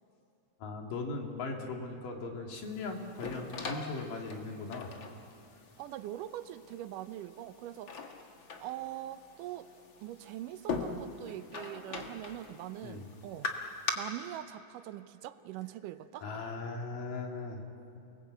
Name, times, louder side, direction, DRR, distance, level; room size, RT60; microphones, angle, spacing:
voice 1, 0.6-5.0 12.8-13.1 16.2-17.6, left 3 dB, 80° left, 2 dB, 3.9 m, -39 dB
sound 1, 2.5-13.9, left 4 dB, 45° left, 1.9 m, -42 dB
voice 2, 5.8-7.9 8.6-9.7 10.0-13.5 14.0-16.3, right 13 dB, 80° right, 12 dB, 2.3 m, -42 dB
29.0 x 19.5 x 8.2 m, 2.6 s
omnidirectional pair, 3.8 m